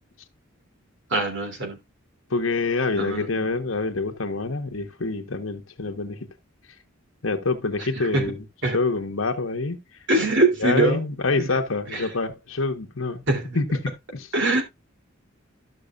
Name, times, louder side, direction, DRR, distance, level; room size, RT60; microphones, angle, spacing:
voice 1, 1.1-1.8 3.0-3.5 8.1-8.2 8.6-8.8 10.1-11.0 11.3-11.5 11.9-12.0 13.3-13.6 14.3-14.6, right 2 dB, 65° right, 3.0 m, -23 dB
voice 2, 2.3-6.3 7.2-8.4 8.7-9.8 10.6-13.2 13.5-14.3, left 3 dB, 85° left, 1.3 m, -26 dB
13.5 x 6.2 x 2.4 m
head